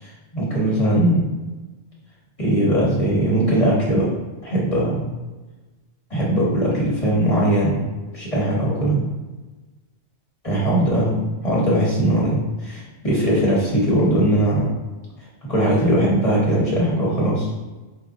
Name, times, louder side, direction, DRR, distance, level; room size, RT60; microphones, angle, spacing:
voice 1, 0.0-1.2 2.4-4.1 4.4-5.1 6.1-7.8 8.1-9.0 10.4-11.2 11.4-14.7 15.5-17.5, right 1 dB, 30° left, -7 dB, 1.2 m, -20 dB
4.9 x 2.5 x 3.8 m, 1.2 s
omnidirectional pair, 1.2 m